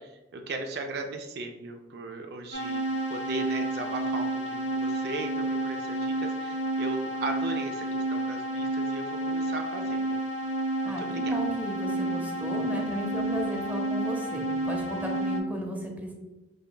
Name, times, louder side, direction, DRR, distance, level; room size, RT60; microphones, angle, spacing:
voice 1, 0.0-10.2 10.9-11.3 12.0-12.4, right 3 dB, 60° right, 4 dB, 0.4 m, -37 dB
sound 1, 2.5-15.4, right 1 dB, 90° left, 0.7 m, -30 dB
voice 2, 10.8-16.1, right 1 dB, 10° right, 1 dB, 0.6 m, -34 dB
4.9 x 3.3 x 2.2 m, 1.0 s
head